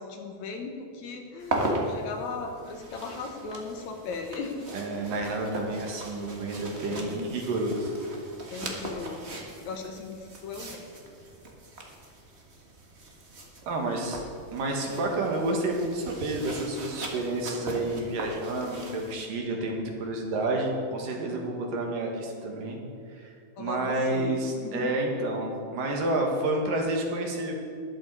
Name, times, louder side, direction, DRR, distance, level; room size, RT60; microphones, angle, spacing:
voice 1, 0.0-4.6 6.9-7.3 8.5-9.3 9.7-10.2 10.4-10.8 18.7-19.1 23.6-24.9, left 4 dB, 65° left, 3 dB, 2.2 m, -38 dB
sound 1, 1.4-19.1, right 1 dB, 40° right, 0.9 m, -38 dB
voice 2, 4.7-8.0 13.7-14.2 14.5-22.8 23.1-27.5, right 2 dB, 75° right, 1 dB, 3.4 m, -30 dB
14.0 x 11.5 x 4.8 m, 2.3 s
omnidirectional pair, 3.9 m